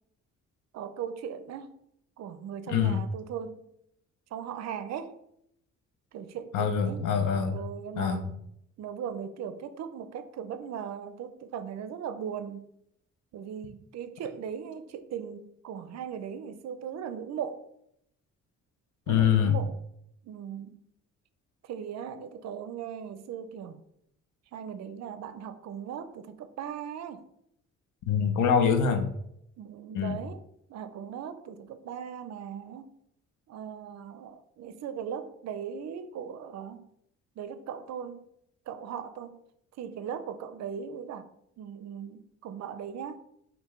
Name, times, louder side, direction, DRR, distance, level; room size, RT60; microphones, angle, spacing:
voice 1, 0.7-1.7 2.2-3.6 4.3-5.2 6.1-7.0 7.5-8.2 8.8-12.7 13.3-17.6 19.1-19.7 20.2-20.8 21.6-23.8 24.5-27.2 29.6-30.4 30.7-32.9 33.5-36.9 37.4-38.2 38.7-39.4 39.8-41.3 41.6-43.2, right 8 dB, 60° right, 0.5 m, -38 dB
voice 2, 2.7-3.0 6.5-7.6 8.0-8.3 19.1-19.6 28.1-29.1 29.9-30.2, left 7 dB, 85° left, 0.7 m, -25 dB
5.5 x 2.6 x 3.1 m
cardioid pair, 90°, 30 cm